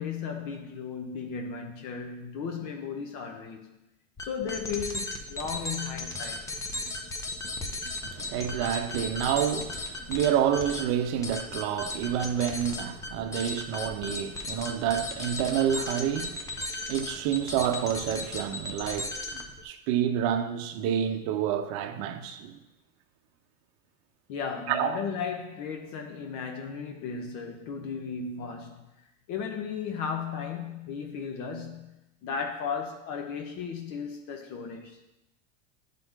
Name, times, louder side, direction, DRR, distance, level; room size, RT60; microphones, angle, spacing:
voice 1, 0.0-3.7 4.2-6.6 24.3-28.9 29.3-31.9 32.2-35.0, left 6 dB, 50° left, 0.8 m, -35 dB
sound 1, 4.2-19.6, left 2 dB, 10° left, 0.3 m, -36 dB
voice 2, 8.1-22.6 24.7-25.0, right 9 dB, 60° right, 0.8 m, -29 dB
9.8 x 3.8 x 3.7 m
supercardioid pair, 130°, 37 cm